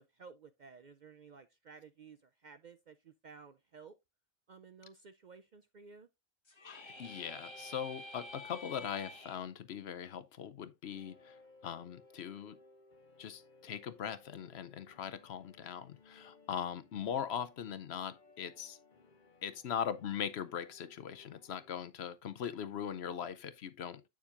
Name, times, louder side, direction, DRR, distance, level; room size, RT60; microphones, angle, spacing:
voice 1, 0.0-3.9 4.5-6.1, right 5 dB, 55° right, 0.5 m, -55 dB
sound 1, 6.5-9.4, left 1 dB, 25° left, 1.2 m, -49 dB
voice 2, 6.6-11.4 11.6-12.6 13.2-18.8 19.4-24.1, left 8 dB, 65° left, 0.9 m, -40 dB
sound 2, 6.9-10.1 10.9-21.8, left 3 dB, 40° left, 1.3 m, -63 dB
8.6 x 7.1 x 2.5 m
omnidirectional pair, 1.3 m